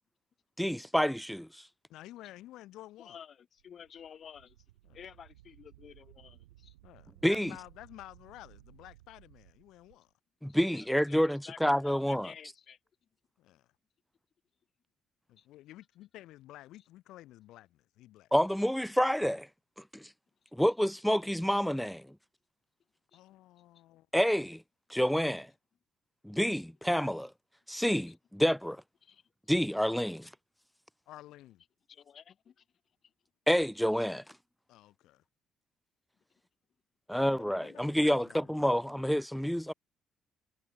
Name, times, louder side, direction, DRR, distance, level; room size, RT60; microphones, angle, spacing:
voice 1, 0.6-1.5 7.2-7.5 10.4-12.3 18.3-19.5 19.9-20.1 20.5-22.1 24.1-24.6 24.9-25.5 26.2-27.3 27.7-28.8 29.5-30.3 33.5-34.2 37.1-39.7, equal, ahead, 0.4 m, -28 dB
voice 2, 1.9-3.2 4.8-5.0 6.8-10.1 13.4-13.7 15.3-18.3 23.1-24.1 31.1-31.6 34.7-35.2 37.1-38.8, left 15 dB, 70° left, 2.6 m, -52 dB
voice 3, 3.0-4.6 4.9-6.7 10.5-11.2 11.4-12.8 15.4-15.5 23.1-23.2 29.0-29.2 31.9-32.6 37.7-37.8, left 8 dB, 55° left, 2.2 m, -52 dB
Wind, 3.6-10.0, right 17 dB, 85° right, 5.7 m, -59 dB
hypercardioid pair, 45°, 0 cm